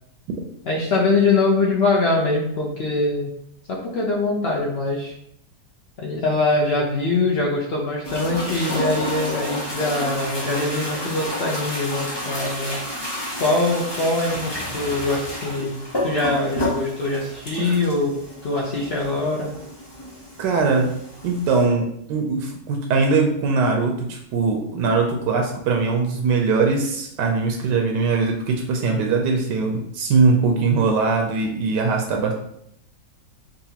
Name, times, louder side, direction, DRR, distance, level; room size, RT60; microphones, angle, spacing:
voice 1, 0.6-3.3 3.7-5.1 6.0-12.8 13.4-18.1 18.4-19.5, left 2 dB, 75° left, -2 dB, 0.5 m, -23 dB
sound 1, 8.0-21.6, left 1 dB, 25° left, 0.6 m, -30 dB
voice 2, 20.4-20.9 21.2-32.3, right 4 dB, 85° right, 2 dB, 1.2 m, -21 dB
4.0 x 2.5 x 2.8 m, 0.72 s
omnidirectional pair, 1.9 m